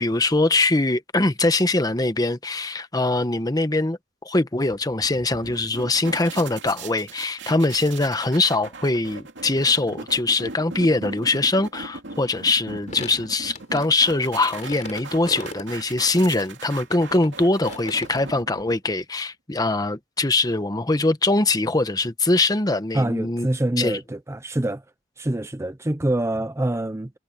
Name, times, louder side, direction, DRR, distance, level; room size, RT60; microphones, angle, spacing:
voice 1, 0.0-4.0 4.2-23.5 23.8-24.0, left 2 dB, 20° left, 1.0 m, -22 dB
sound 1, 4.7-19.0, right 3 dB, 85° right, 2.4 m, -39 dB
sound 2, 12.9-16.3 16.9-18.2, left 2 dB, 40° left, 5.2 m, -38 dB
voice 2, 22.9-24.8 25.2-27.1, right 1 dB, 15° right, 0.6 m, -25 dB
head